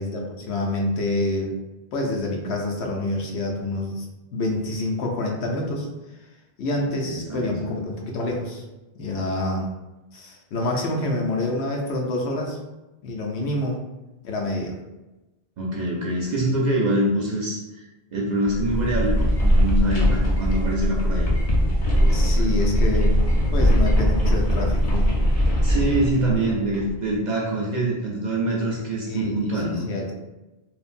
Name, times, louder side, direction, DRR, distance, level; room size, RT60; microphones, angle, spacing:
voice 1, 0.0-1.5 1.9-4.1 4.3-5.9 6.6-8.6 8.9-9.6 10.1-12.6 13.0-13.8 14.2-14.8 22.1-25.1 29.1-30.1, left 2 dB, 80° left, 0 dB, 0.9 m, -27 dB
voice 2, 7.0-7.8 15.6-17.9 18.1-21.3 21.9-22.6 25.6-29.9, right 1 dB, 55° right, -4 dB, 0.5 m, -25 dB
sound 1, 18.4-27.0, equal, 50° left, 0.4 m, -20 dB
3.2 x 2.1 x 2.4 m, 1.1 s
omnidirectional pair, 1.1 m